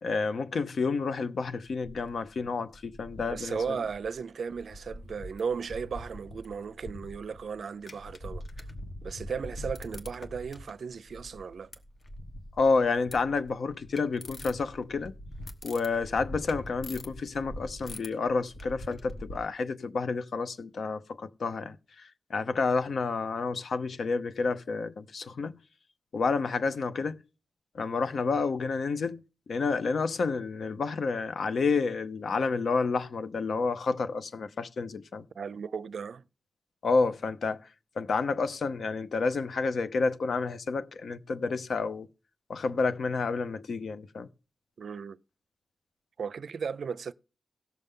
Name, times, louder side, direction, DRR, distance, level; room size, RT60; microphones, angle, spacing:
voice 1, 0.0-3.6 12.6-15.1 15.6-25.6 26.1-27.2 27.7-35.2 36.8-37.6 38.0-42.1 42.5-44.3, left 4 dB, 75° left, 0.7 m, -30 dB
sound 1, 1.6-2.5 2.7-4.2 4.5-19.4, left 1 dB, 50° left, 1.2 m, -44 dB
voice 2, 3.3-8.4 9.0-11.7 35.4-36.2 44.8-45.2 46.2-47.1, right 6 dB, 75° right, 0.4 m, -36 dB
18.0 x 6.8 x 3.7 m
wide cardioid pair, 155°, 0 cm